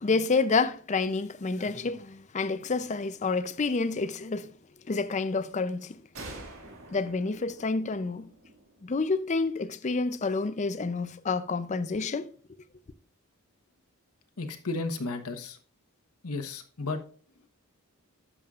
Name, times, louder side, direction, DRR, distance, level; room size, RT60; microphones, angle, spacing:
voice 1, 0.0-4.5 4.9-5.9 6.9-8.3 8.8-12.3, left 4 dB, 35° left, 0.5 m, -28 dB
sound 1, 6.1-9.7, right 2 dB, 65° right, 2.3 m, -47 dB
voice 2, 14.4-15.6 16.2-17.0, left 3 dB, 85° left, 1.1 m, -33 dB
11.0 x 7.1 x 2.4 m
head